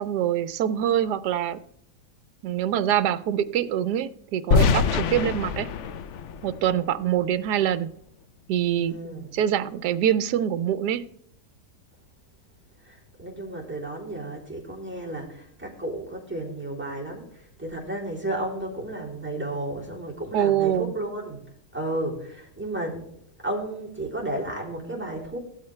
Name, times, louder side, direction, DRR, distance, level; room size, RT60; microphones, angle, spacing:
voice 1, 0.0-1.6 2.4-5.7 6.4-7.9 8.5-9.0 9.3-11.1 20.3-20.9, right 10 dB, 75° right, 14 dB, 1.2 m, -24 dB
sound 1, 4.5-7.5, left 5 dB, 65° left, 0.7 m, -25 dB
voice 2, 8.7-9.4 12.8-21.4 21.7-23.0 23.4-25.4, right 1 dB, 5° right, -3 dB, 3.1 m, -33 dB
15.5 x 12.5 x 3.3 m, 0.68 s
omnidirectional pair, 1.9 m